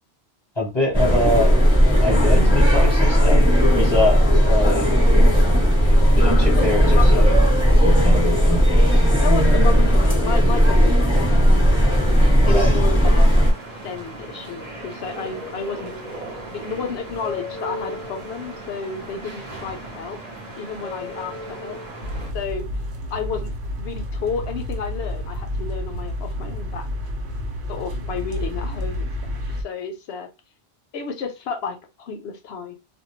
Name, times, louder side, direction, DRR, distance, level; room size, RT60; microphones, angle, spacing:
voice 1, 0.6-1.6 2.0-4.9 5.8-7.4 8.0-8.2 12.4-12.7, left 1 dB, 25° left, 0.7 m, -24 dB
sound 1, 0.9-13.5, equal, 5° right, 0.9 m, -16 dB
voice 2, 6.1-6.6 7.0-7.4 9.2-11.5 12.5-13.3 13.8-15.9 16.5-20.2 20.6-21.8 22.3-22.7 23.1-23.5 23.8-26.9 27.7-30.3 30.9-32.8, left 5 dB, 70° left, 0.8 m, -31 dB
sound 2, 13.1-22.3, equal, 40° right, 0.8 m, -36 dB
sound 3, 22.0-29.6, left 1 dB, 70° right, 0.9 m, -30 dB
2.2 x 2.2 x 2.9 m
omnidirectional pair, 1.2 m